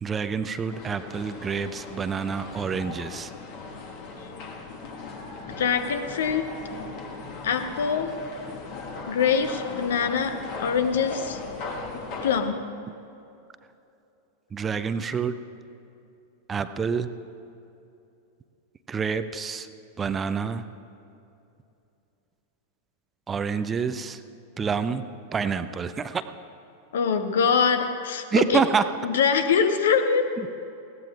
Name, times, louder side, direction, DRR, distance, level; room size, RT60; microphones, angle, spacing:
voice 1, 0.0-3.3 14.5-15.4 16.5-17.1 18.9-19.7 20.0-20.7 23.3-24.2 24.6-25.0 25.3-26.2 28.3-28.8 30.4-30.5, right 6 dB, 20° right, 11 dB, 0.5 m, -27 dB
sound 1, 0.7-12.4, left 3 dB, 45° left, 1.5 m, -38 dB
voice 2, 5.6-6.5 7.4-8.1 9.0-11.4 12.2-12.7 26.9-28.2 28.5-28.6 29.0-30.3, left 6 dB, 60° left, 9 dB, 0.8 m, -24 dB
20.5 x 16.5 x 2.4 m, 2.7 s
figure-of-eight pair, 90°, 0 cm